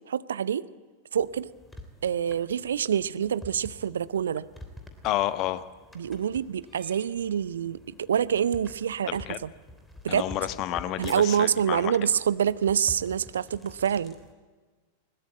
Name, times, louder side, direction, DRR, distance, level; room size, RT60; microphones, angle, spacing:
voice 1, 0.1-0.6 1.1-1.5 2.0-4.4 6.0-9.5 10.0-10.3 11.0-14.1, right 8 dB, 65° right, 18 dB, 0.7 m, -26 dB
sound 1, 1.1-14.3, equal, 5° left, 3.1 m, -48 dB
voice 2, 5.0-5.7 9.1-9.4 10.1-11.9, left 14 dB, 40° left, 13 dB, 1.2 m, -30 dB
20.5 x 20.0 x 8.8 m, 1.4 s
figure-of-eight pair, 90°, 0 cm